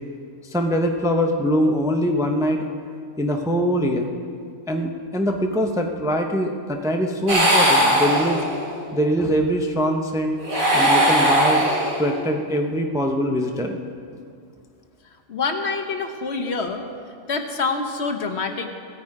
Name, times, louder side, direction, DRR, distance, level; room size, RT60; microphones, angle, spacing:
voice 1, 0.4-2.7 3.2-4.1 4.7-8.4 8.9-10.4 10.7-11.7 12.0-13.8, equal, 5° right, 3 dB, 0.7 m, -23 dB
sound 1, 7.3-8.7 10.4-12.2, equal, 85° right, 3.7 m, -19 dB
voice 2, 15.3-16.8 17.3-18.7, left 4 dB, 55° left, 5 dB, 1.2 m, -26 dB
16.5 x 13.5 x 4.9 m, 2.2 s
omnidirectional pair, 1.4 m